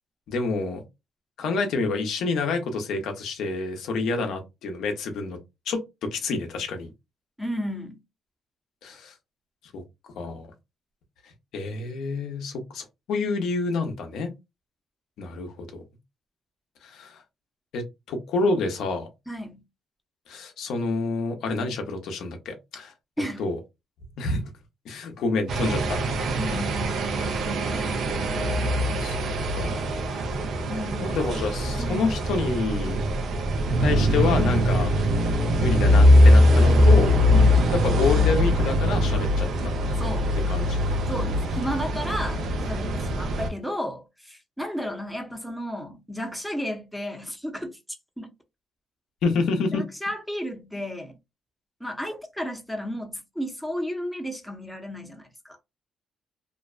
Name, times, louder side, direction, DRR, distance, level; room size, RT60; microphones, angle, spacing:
voice 1, 0.3-0.8 1.4-5.4 5.7-5.8 6.1-6.9 8.8-9.1 9.7-9.8 10.2-10.5 11.5-14.3 15.2-15.8 16.8-17.2 17.7-19.1 20.3-22.9 23.4-23.6 24.2-24.4 24.9-26.0 27.7-28.0 29.0-29.2 29.5-30.0 31.0-33.0 33.8-34.9 35.6-37.2 37.8-39.7 40.5-41.0 49.2-49.8, left 3 dB, 80° left, 0.6 m, -28 dB
voice 2, 4.0-4.4 7.4-8.0 19.3-19.6 23.2-23.5 26.4-27.1 30.7-31.2 31.8-32.1 37.3-37.7 40.0-40.3 41.0-47.8 48.2-48.3 49.7-51.1 51.8-55.6, equal, ahead, 0.6 m, -33 dB
sound 1, 25.5-43.5, left 1 dB, 70° right, 0.5 m, -21 dB
2.5 x 2.1 x 2.4 m
cardioid pair, 90°, 0 cm